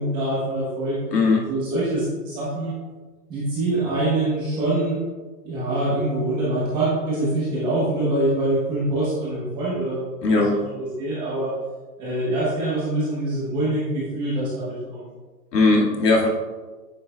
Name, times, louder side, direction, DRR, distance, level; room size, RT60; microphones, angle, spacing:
voice 1, 0.0-1.0 1.5-2.7 3.3-5.0 5.4-11.5 12.0-15.1, right 1 dB, 10° right, -8 dB, 0.9 m, -24 dB
voice 2, 1.1-1.5 10.2-10.5 15.5-16.3, left 3 dB, 75° left, -2 dB, 2.1 m, -18 dB
9.0 x 6.2 x 2.3 m, 1.3 s
hypercardioid pair, 165°, 49 cm